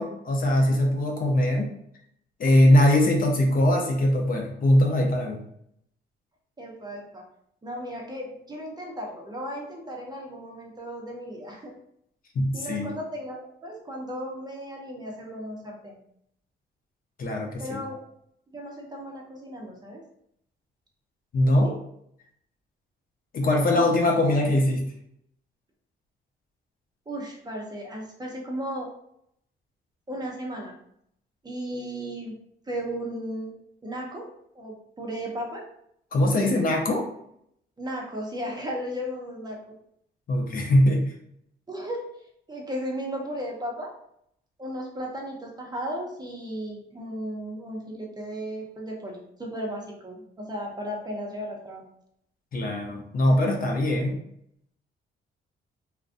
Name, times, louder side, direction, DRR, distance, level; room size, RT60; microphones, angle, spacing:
voice 1, 0.0-1.7 2.4-5.4 12.3-12.9 17.2-17.8 21.3-21.7 23.3-24.8 36.1-37.0 40.3-41.1 52.5-54.2, left 1 dB, 45° left, 1 dB, 0.6 m, -21 dB
voice 2, 6.6-7.2 7.6-11.7 12.5-16.0 17.6-18.0 18.5-20.0 21.4-21.8 23.7-23.9 27.1-28.9 30.1-30.8 31.4-32.3 32.7-33.5 33.8-34.3 34.6-35.6 37.8-39.6 41.7-42.1 42.5-43.9 44.6-51.8, equal, 20° right, -1 dB, 0.6 m, -35 dB
2.4 x 2.1 x 2.5 m, 0.72 s
cardioid pair, 90°, 20 cm